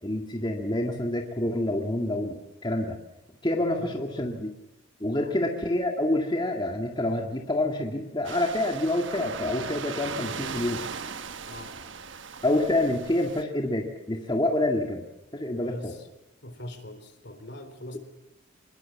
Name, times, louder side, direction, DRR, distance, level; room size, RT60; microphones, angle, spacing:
voice 1, 0.0-3.0 3.4-4.5 5.0-10.8 12.4-15.1 15.3-16.0, left 1 dB, 20° left, 1 dB, 2.1 m, -27 dB
voice 2, 3.8-4.3 5.1-5.3 11.5-11.7 15.6-16.0 16.4-18.0, left 1 dB, 55° left, 8 dB, 3.9 m, -42 dB
sound 1, 8.2-13.4, right 5 dB, 60° right, 1.2 m, -38 dB
26.0 x 21.5 x 7.4 m, 0.89 s
head